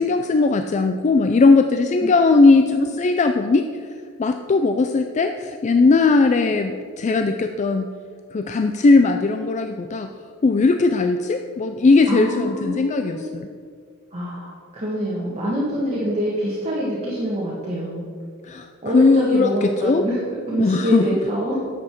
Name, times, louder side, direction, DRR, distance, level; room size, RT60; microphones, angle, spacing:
voice 1, 0.0-3.7 4.2-7.9 8.3-10.1 10.4-13.5 18.4-20.1 20.6-21.1, left 3 dB, 30° left, 6 dB, 0.4 m, -18 dB
voice 2, 12.1-13.3 14.1-18.1 18.8-21.6, right 1 dB, 30° right, -6 dB, 1.6 m, -25 dB
10.5 x 7.6 x 4.5 m, 2.1 s
head